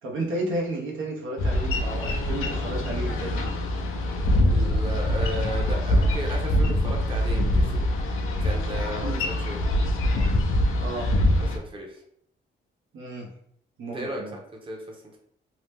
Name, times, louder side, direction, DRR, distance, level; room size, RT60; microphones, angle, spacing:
voice 1, 0.0-3.5 9.0-9.2 10.8-11.1 12.9-13.3 13.8-14.4, right 2 dB, 70° right, -2 dB, 0.8 m, -32 dB
Boat Water vehicle, 1.4-11.6, left 1 dB, 80° left, 0.5 m, -24 dB
Bowed string instrument, 1.8-5.4, left 3 dB, 20° left, 0.5 m, -43 dB
voice 2, 4.5-7.9 8.4-9.6 11.5-12.0 13.9-15.2, equal, 25° right, 0 dB, 0.7 m, -35 dB
2.8 x 2.1 x 3.3 m, 0.69 s
cardioid pair, 80°, 21 cm